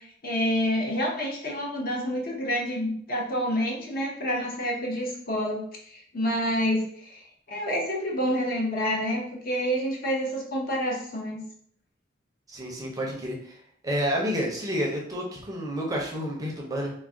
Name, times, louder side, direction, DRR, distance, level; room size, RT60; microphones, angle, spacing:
voice 1, 0.0-11.4, equal, 50° left, -2 dB, 0.7 m, -28 dB
voice 2, 12.5-13.6 13.8-16.9, equal, 20° right, -1 dB, 0.5 m, -30 dB
2.3 x 2.1 x 3.6 m, 0.63 s
head